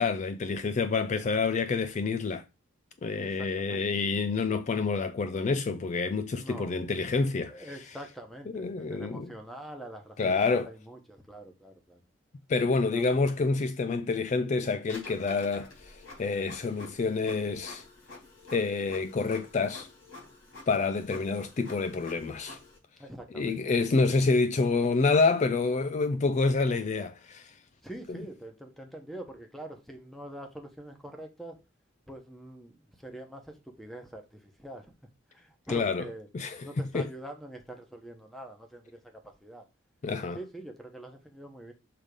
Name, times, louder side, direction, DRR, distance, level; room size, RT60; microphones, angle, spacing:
voice 1, 0.0-2.4 3.0-7.7 8.5-9.3 10.2-10.7 12.5-17.8 18.5-19.9 20.7-22.6 23.3-27.5 35.7-36.0 36.3-36.7 36.9-37.0 40.0-40.4, left 4 dB, 35° left, 0.3 m, -28 dB
voice 2, 3.2-3.9 6.3-6.8 7.5-12.0 12.9-13.1 23.0-23.6 27.8-31.6 32.1-34.9 35.3-36.3 36.6-39.7 40.3-41.7, right 1 dB, ahead, 1.1 m, -45 dB
Printer, 14.8-22.8, left 2 dB, 85° left, 4.0 m, -49 dB
6.6 x 3.6 x 5.1 m
head